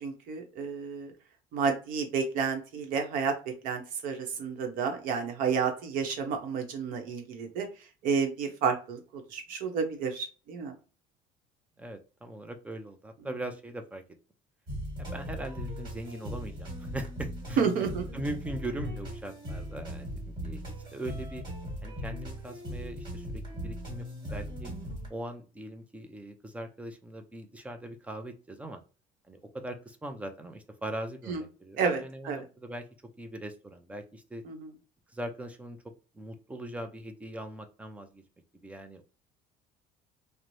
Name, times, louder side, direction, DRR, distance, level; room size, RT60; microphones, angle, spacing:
voice 1, 0.0-1.1 1.5-3.3 3.6-7.7 8.0-10.7 17.6-18.0 31.3-31.4 31.8-32.4 34.4-34.7, right 6 dB, 65° right, 5 dB, 0.8 m, -30 dB
voice 2, 11.8-14.0 15.0-17.6 18.1-20.6 20.9-21.4 21.8-24.1 24.3-24.7 25.1-28.8 29.3-34.4 35.1-38.2 38.6-39.0, right 1 dB, 10° right, 6 dB, 0.4 m, -40 dB
sound 1, 14.7-25.1, equal, 30° right, 1.5 m, -39 dB
3.1 x 2.0 x 2.5 m, 0.35 s
cardioid pair, 150°, 15 cm